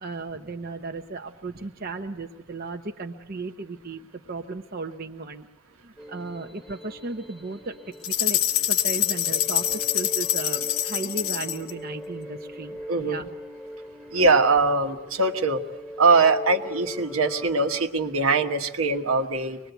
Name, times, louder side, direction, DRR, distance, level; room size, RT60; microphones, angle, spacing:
voice 1, 0.0-5.5 5.8-13.3, right 3 dB, 45° right, 4 dB, 0.9 m, -35 dB
sound 1, 6.0-17.9, equal, ahead, 1.2 m, -40 dB
sound 2, 8.0-11.7, left 12 dB, 75° left, 1.0 m, -25 dB
voice 2, 12.9-13.2 14.1-15.6 16.0-19.6, right 3 dB, 75° right, 6 dB, 1.4 m, -22 dB
25.0 x 21.0 x 8.2 m, 1.0 s
head